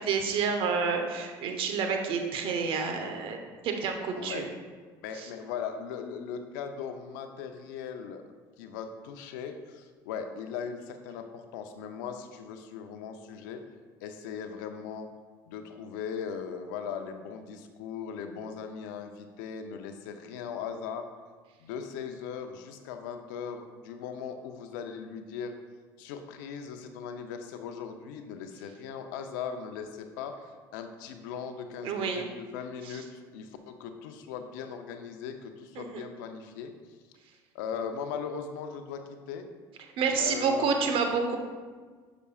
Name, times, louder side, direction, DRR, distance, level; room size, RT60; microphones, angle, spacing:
voice 1, 0.0-3.4 3.6-4.5 5.2-5.3 31.8-32.3 32.9-33.0 35.8-36.0 40.0-41.4, right 5 dB, 60° right, 4 dB, 0.9 m, -29 dB
voice 2, 4.2-4.5 5.0-8.2 8.6-13.6 14.0-15.1 15.5-21.1 21.6-25.6 26.0-36.7 37.5-39.5 40.2-40.8, left 7 dB, 80° left, 7 dB, 0.6 m, -39 dB
6.6 x 6.0 x 2.4 m, 1.5 s
supercardioid pair, 85°, 10 cm